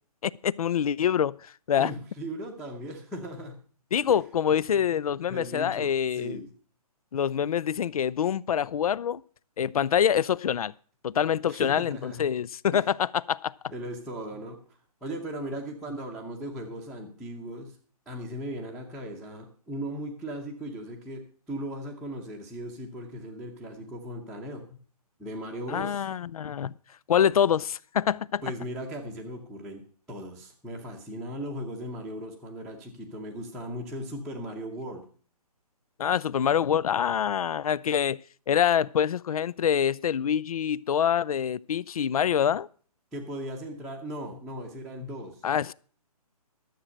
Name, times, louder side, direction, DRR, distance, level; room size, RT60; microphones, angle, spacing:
voice 1, 0.2-1.9 3.9-6.4 7.1-9.2 9.6-10.7 11.0-13.5 25.7-26.7 27.1-28.4 36.0-38.2 38.5-42.7 45.4-45.7, left 8 dB, 65° left, 0.5 m, -25 dB
voice 2, 1.8-3.6 4.1-4.2 4.7-4.8 5.3-6.5 9.8-9.9 11.5-12.3 12.7-12.8 13.7-17.8 18.1-24.6 25.2-26.1 28.4-35.0 43.1-45.4, right 1 dB, ahead, 0.8 m, -38 dB
13.0 x 7.5 x 6.4 m
hypercardioid pair, 165°, 20 cm